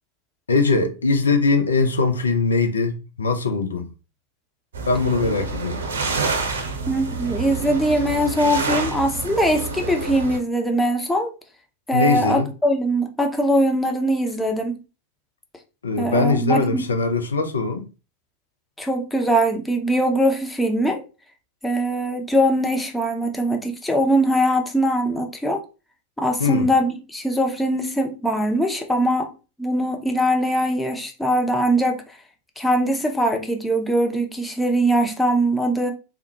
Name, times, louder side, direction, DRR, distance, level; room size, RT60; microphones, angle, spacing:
voice 1, 0.5-3.9 4.9-5.8 11.9-12.5 15.8-17.9 26.4-26.6, left 3 dB, 75° left, 0.5 m, -21 dB
sound 1, 4.7-10.4, right 4 dB, 65° right, 0.7 m, -28 dB
voice 2, 6.9-11.3 11.9-14.7 16.0-16.8 18.8-21.0 21.6-25.6 26.2-29.3 29.6-32.0 32.6-35.9, equal, 5° left, 0.6 m, -21 dB
3.5 x 2.1 x 2.8 m
figure-of-eight pair, 90°, 0 cm